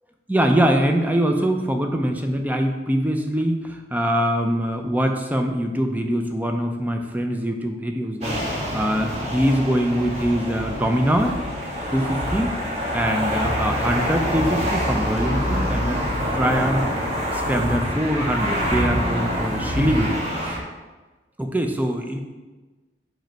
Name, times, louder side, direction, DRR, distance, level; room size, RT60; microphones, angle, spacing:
voice 1, 0.3-11.4 11.9-12.5 12.9-16.0 16.3-16.9 17.3-20.6 21.4-22.2, equal, 10° right, 4 dB, 0.5 m, -23 dB
sound 1, 8.2-20.6, equal, 35° right, 1.3 m, -25 dB
5.1 x 5.1 x 4.5 m, 1.2 s
head